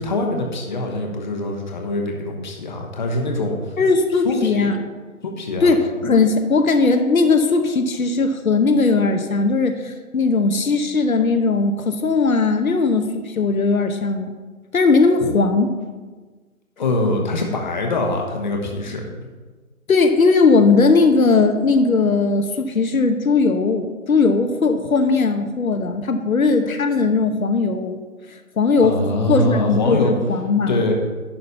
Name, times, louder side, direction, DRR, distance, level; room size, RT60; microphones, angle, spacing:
voice 1, 0.0-3.8 4.2-4.7 5.2-5.7 16.8-19.0 28.8-30.1 30.7-30.9, left 2 dB, 30° left, 1 dB, 1.1 m, -23 dB
voice 2, 3.8-4.8 5.6-14.3 14.7-15.7 19.9-28.0 28.6-29.0 29.3-30.9, left 4 dB, 70° left, 7 dB, 1.0 m, -18 dB
11.0 x 3.9 x 6.9 m, 1.3 s
hypercardioid pair, 165°, 43 cm